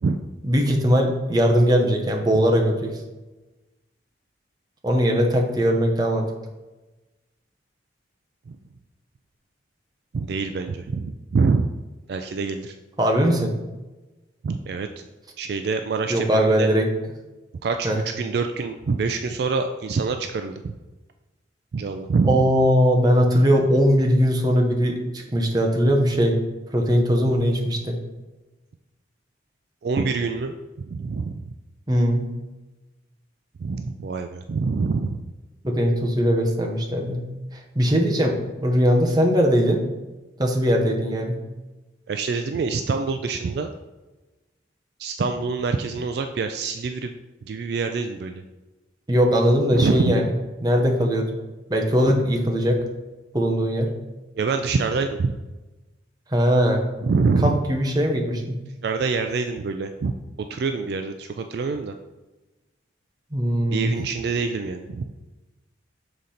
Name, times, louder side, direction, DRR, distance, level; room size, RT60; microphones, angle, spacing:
voice 1, 0.4-3.0 4.8-6.3 13.0-13.5 16.1-16.9 17.8-18.0 22.2-26.4 26.7-28.0 31.9-32.2 35.6-37.2 37.8-39.9 40.4-41.4 49.1-50.3 50.6-51.3 51.7-52.8 53.3-53.9 56.3-56.8 57.4-58.6 63.3-63.9, equal, 20° right, 1 dB, 0.8 m, -20 dB
voice 2, 10.1-11.7 12.1-12.8 14.4-14.9 15.4-16.7 17.6-20.7 21.7-22.4 29.8-31.4 33.6-35.2 42.1-43.7 45.0-47.1 47.5-48.4 49.7-50.2 54.4-55.3 57.0-57.6 58.8-60.1 60.5-61.9 63.7-65.0, right 4 dB, 55° right, 6 dB, 0.3 m, -25 dB
6.7 x 3.8 x 4.2 m, 1.1 s
head